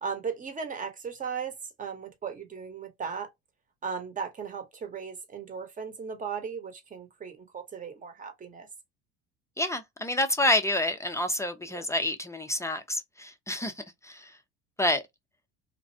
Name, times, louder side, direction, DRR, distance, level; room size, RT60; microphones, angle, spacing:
voice 1, 0.0-3.3 3.8-8.7 11.6-11.8, right 6 dB, 25° right, 0.9 m, -37 dB
voice 2, 9.6-14.3 14.8-15.0, left 1 dB, 10° left, 0.4 m, -28 dB
2.3 x 2.0 x 2.6 m
supercardioid pair, 85°, 32 cm